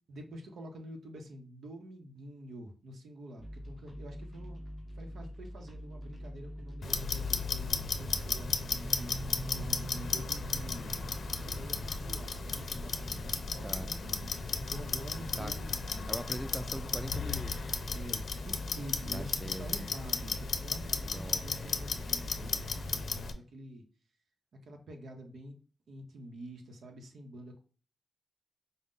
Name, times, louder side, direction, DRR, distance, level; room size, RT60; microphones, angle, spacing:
voice 1, 0.1-4.6 4.9-11.0 11.4-16.1 17.9-23.8 24.6-25.6 25.9-27.6, right 1 dB, 80° right, 3 dB, 0.7 m, -47 dB
sound 1, 3.4-23.1, equal, 30° right, 1.4 m, -45 dB
Clock, 6.8-23.3, left 4 dB, 65° left, 0.5 m, -35 dB
voice 2, 16.1-17.8 19.0-19.9 21.0-21.8, right 1 dB, 5° right, 10 dB, 0.4 m, -42 dB
5.2 x 2.1 x 3.7 m, 0.38 s
wide cardioid pair, 95°, 0 cm